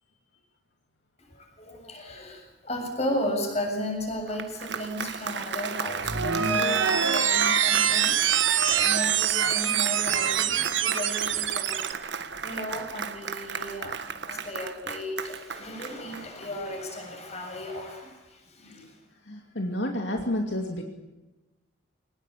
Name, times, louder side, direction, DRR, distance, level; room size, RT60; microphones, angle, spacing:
voice 1, 1.2-11.8 12.4-19.0, left 1 dB, 35° left, 3 dB, 7.4 m, -34 dB
Applause, 4.1-16.7, right 5 dB, 65° right, 1.5 m, -35 dB
sound 1, 6.0-11.9, right 9 dB, 90° right, 1.8 m, -24 dB
voice 2, 19.3-20.8, left 1 dB, 70° left, 3 dB, 2.6 m, -30 dB
23.5 x 20.0 x 8.5 m, 1.1 s
head